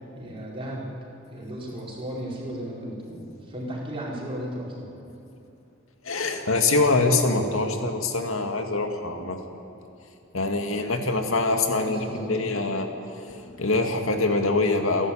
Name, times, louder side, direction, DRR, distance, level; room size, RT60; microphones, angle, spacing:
voice 1, 0.1-0.9 1.3-4.9 11.6-12.5, equal, 25° right, -4 dB, 4.8 m, -35 dB
voice 2, 6.0-9.4 10.3-12.9 13.2-15.1, left 3 dB, 85° left, 4 dB, 2.1 m, -24 dB
29.0 x 11.5 x 8.8 m, 2.8 s
head